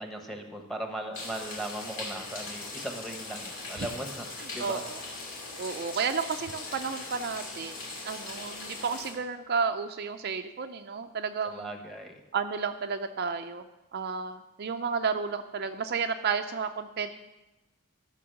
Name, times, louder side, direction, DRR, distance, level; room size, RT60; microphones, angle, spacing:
voice 1, 0.0-4.3 4.5-4.8 11.4-12.2, right 1 dB, ahead, 4 dB, 1.2 m, -38 dB
sound 1, 1.1-9.1, left 3 dB, 60° left, 2.6 m, -40 dB
voice 2, 4.6-5.0 5.6-7.7 8.0-11.7 12.3-13.6 13.9-17.2, right 5 dB, 50° right, 6 dB, 0.5 m, -32 dB
12.5 x 6.0 x 6.9 m, 1.0 s
head